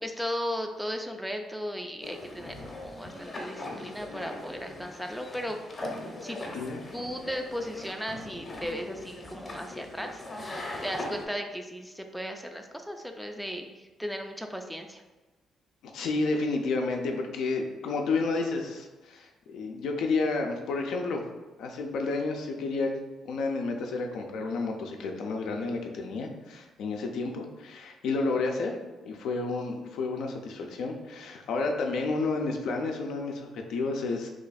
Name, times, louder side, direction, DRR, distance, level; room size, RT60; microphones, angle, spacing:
voice 1, 0.0-5.6 6.2-6.4 6.9-15.0, equal, ahead, 4 dB, 0.3 m, -36 dB
sound 1, 2.0-11.2, left 1 dB, 30° left, 0.7 m, -40 dB
voice 2, 6.5-7.1 15.9-21.2 21.6-22.9 23.2-28.7 29.1-34.3, left 3 dB, 80° left, 2 dB, 0.5 m, -31 dB
3.0 x 2.3 x 4.0 m, 1.2 s
cardioid pair, 90°, 0 cm